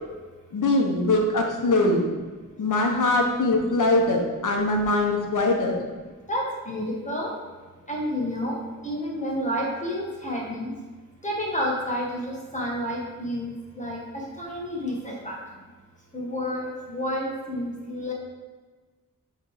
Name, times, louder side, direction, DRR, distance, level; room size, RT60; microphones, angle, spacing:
voice 1, 0.5-2.1 2.6-5.8, left 2 dB, 65° left, 1 dB, 1.1 m, -22 dB
voice 2, 6.3-7.3 7.9-8.6 8.8-10.7 11.2-14.0 14.4-15.3 16.1-18.1, equal, 20° left, -3 dB, 1.6 m, -30 dB
7.3 x 3.4 x 5.0 m, 1.3 s
wide cardioid pair, 65°, 34 cm